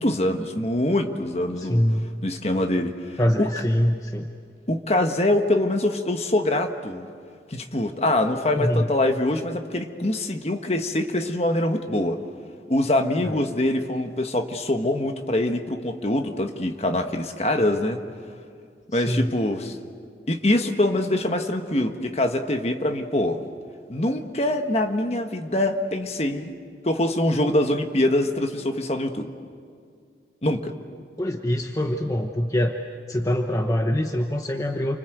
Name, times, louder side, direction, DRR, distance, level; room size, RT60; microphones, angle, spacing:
voice 1, 0.0-1.8 2.2-3.0 3.4-3.5 4.7-7.1 7.5-12.2 12.7-18.0 18.9-19.8 20.3-23.4 23.9-26.5 26.8-29.3 30.4-30.8, left 1 dB, 35° left, 6 dB, 1.4 m, -24 dB
voice 2, 1.6-2.1 3.2-4.3 8.6-8.9 13.2-13.5 18.9-19.3 31.2-32.8 33.1-35.0, equal, 20° left, 3 dB, 1.0 m, -24 dB
29.5 x 25.0 x 8.0 m, 2.2 s
head